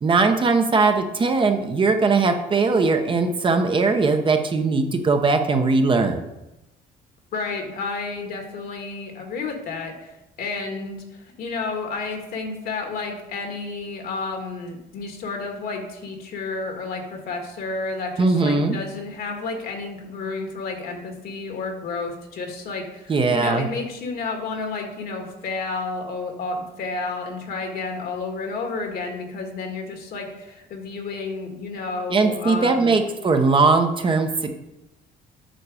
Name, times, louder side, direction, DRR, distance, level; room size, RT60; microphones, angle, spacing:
voice 1, 0.0-6.2 18.2-18.8 23.1-23.7 32.1-34.3, right 4 dB, 30° right, 5 dB, 0.9 m, -20 dB
voice 2, 7.3-33.0, left 3 dB, 65° left, 3 dB, 1.8 m, -31 dB
7.8 x 6.0 x 4.9 m, 0.96 s
cardioid pair, 110°, 17 cm